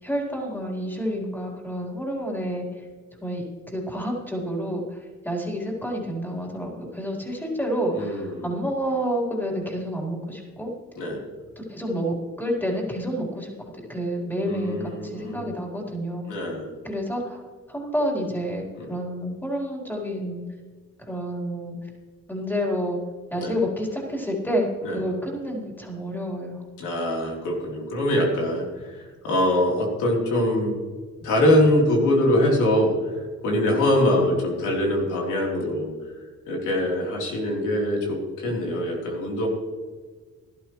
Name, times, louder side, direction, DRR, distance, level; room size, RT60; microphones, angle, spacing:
voice 1, 0.0-2.7 3.2-10.7 11.6-16.5 16.8-17.4 17.7-20.4 21.0-21.8 22.3-23.0 23.3-26.6, equal, 5° left, -2 dB, 4.1 m, -29 dB
voice 2, 7.9-8.5 11.0-11.2 14.4-15.6 16.3-16.7 18.8-18.9 23.3-23.5 24.8-25.0 26.8-30.7 31.2-35.9 36.5-39.5, left 1 dB, 85° left, -1 dB, 3.6 m, -23 dB
17.5 x 12.0 x 3.2 m, 1.5 s
cardioid pair, 90°, 30 cm